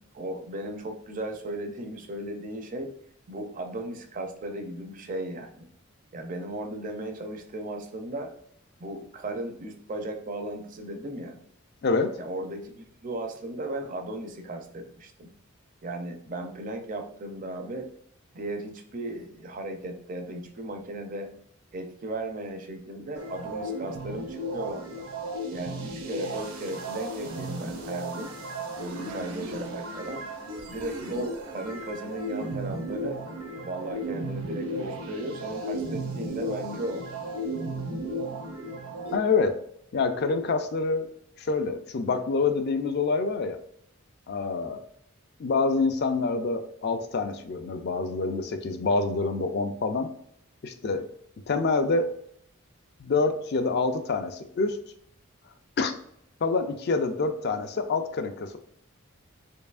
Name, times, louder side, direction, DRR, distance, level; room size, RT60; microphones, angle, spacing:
voice 1, 0.0-2.9 3.3-5.7 6.1-8.3 8.8-11.4 12.2-15.3 15.8-17.9 18.3-21.3 21.7-25.1 25.5-28.3 28.8-30.2 30.7-33.2 33.6-37.1, right 1 dB, 40° right, 5 dB, 0.5 m, -36 dB
voice 2, 11.8-12.2 39.1-39.6 39.9-41.1 41.4-43.6 44.3-44.8 45.4-50.1 50.6-51.0 51.5-52.1 53.0-54.8 55.8-55.9 56.4-58.6, left 4 dB, 50° left, 8 dB, 0.4 m, -26 dB
sound 1, 23.2-39.2, right 1 dB, 85° right, 0.8 m, -35 dB
4.6 x 2.7 x 2.4 m, 0.67 s
head